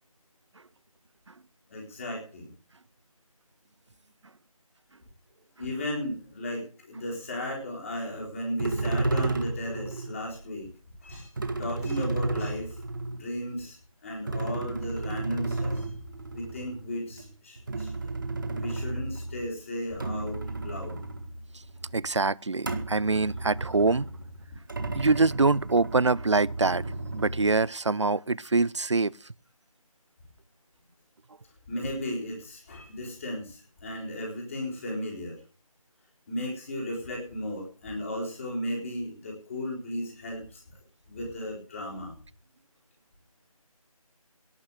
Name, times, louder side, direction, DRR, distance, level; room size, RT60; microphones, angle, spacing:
voice 1, 1.7-2.5 5.6-10.7 11.0-11.3 11.6-12.8 13.1-13.8 14.0-15.9 16.3-17.9 18.5-21.0 31.7-35.4 36.3-40.6 41.1-42.1, left 1 dB, 20° left, 4.2 m, -35 dB
sound 1, 8.1-8.2 8.6-10.2 11.1-13.6 14.3-19.5 19.8-22.1 22.6-27.6, right 2 dB, 35° right, 2.0 m, -33 dB
voice 2, 21.9-24.1 24.9-26.8 27.1-29.1, right 3 dB, 50° right, 0.6 m, -24 dB
18.0 x 6.1 x 8.0 m
figure-of-eight pair, 170°, 19 cm